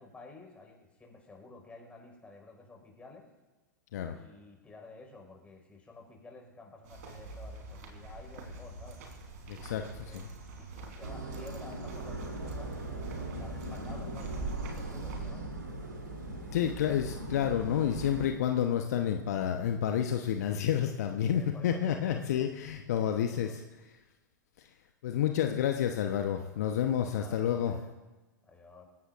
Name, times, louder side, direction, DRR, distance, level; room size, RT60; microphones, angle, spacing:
voice 1, 0.0-3.3 4.1-9.0 9.6-10.2 10.6-12.7 13.2-15.5 21.3-22.5 23.1-23.6 27.1-27.9 28.4-28.9, left 3 dB, 10° left, 0 dB, 5.3 m, -52 dB
sound 1, 6.8-15.3, right 3 dB, 55° right, 3.9 m, -44 dB
voice 2, 9.5-10.3 16.3-23.6 24.6-24.7 25.0-27.7, left 9 dB, 55° left, 5 dB, 1.1 m, -30 dB
sound 2, 11.0-18.3, right 2 dB, 80° right, 3.3 m, -39 dB
28.0 x 16.5 x 2.6 m, 1.2 s
figure-of-eight pair, 100°, 10 cm